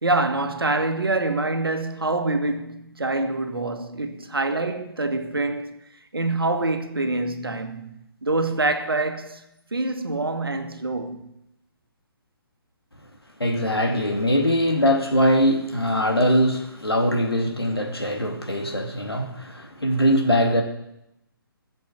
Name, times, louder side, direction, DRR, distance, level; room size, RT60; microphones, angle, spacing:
voice 1, 0.0-5.8 6.1-9.4 9.7-11.2, right 2 dB, 75° right, 1.7 m, -25 dB
voice 2, 13.4-20.6, equal, 85° left, 2.6 m, -22 dB
16.0 x 7.3 x 7.4 m
figure-of-eight pair, 135°, 12 cm